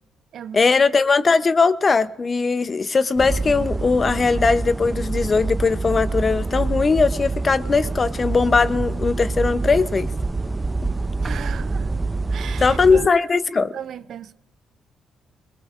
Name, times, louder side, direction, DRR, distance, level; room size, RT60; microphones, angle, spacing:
voice 1, 0.5-10.1 12.6-13.7, left 4 dB, 35° left, 0.6 m, -19 dB
sound 1, 3.2-13.1, right 3 dB, 20° right, 0.5 m, -26 dB
voice 2, 11.2-11.9 12.3-13.1 13.6-14.3, right 9 dB, 70° right, 0.5 m, -35 dB
22.0 x 19.5 x 2.5 m
cardioid pair, 75°, 0 cm